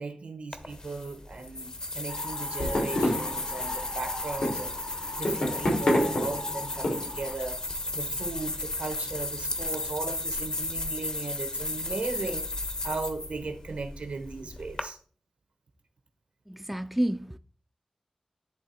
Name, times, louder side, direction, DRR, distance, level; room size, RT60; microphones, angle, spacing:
voice 1, 0.0-4.7 5.2-15.0, right 3 dB, 90° right, 1.2 m, -37 dB
sound 1, 0.5-14.8, left 2 dB, 40° left, 0.9 m, -35 dB
sound 2, 2.1-7.3, left 1 dB, 85° left, 3.2 m, -30 dB
voice 2, 16.5-17.4, right 1 dB, 5° right, 0.4 m, -29 dB
10.5 x 3.4 x 4.2 m
wide cardioid pair, 90°, 2 cm